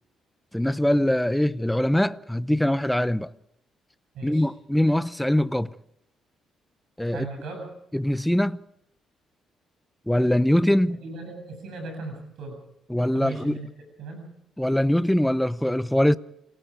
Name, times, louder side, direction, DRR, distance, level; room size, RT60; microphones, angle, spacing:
voice 1, 0.5-3.3 4.2-5.7 7.0-7.3 7.9-8.6 10.1-11.0 12.9-13.6 14.6-16.2, left 1 dB, 5° left, 0.7 m, -22 dB
voice 2, 4.1-4.5 7.1-7.7 11.0-12.6 13.1-13.7 14.0-14.3, right 3 dB, 75° right, 7.4 m, -37 dB
28.0 x 18.0 x 5.0 m
cardioid pair, 90°, 0 cm